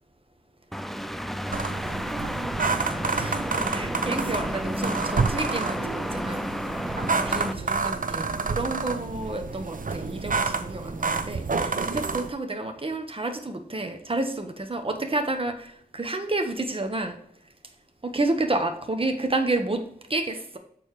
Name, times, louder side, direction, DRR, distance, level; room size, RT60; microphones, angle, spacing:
sound 1, 0.7-7.5, equal, ahead, 0.4 m, -31 dB
voice 1, 1.5-2.5 3.1-3.4 3.7-6.5 6.7-17.2 18.0-20.6, right 2 dB, 35° right, 5 dB, 1.0 m, -30 dB
sound 2, 1.5-12.3, right 4 dB, 60° right, 0.6 m, -29 dB
6.7 x 4.2 x 4.7 m, 0.66 s
wide cardioid pair, 75°, 16 cm